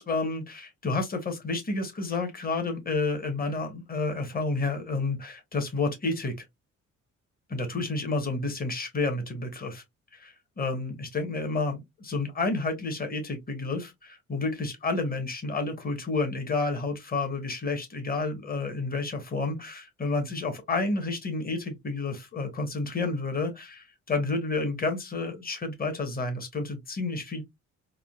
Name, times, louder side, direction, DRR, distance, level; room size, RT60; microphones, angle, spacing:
voice 1, 0.0-6.5 7.5-9.8 10.1-27.4, left 3 dB, 30° left, 1.1 m, -30 dB
3.6 x 2.2 x 2.3 m
cardioid pair, 90°, 30 cm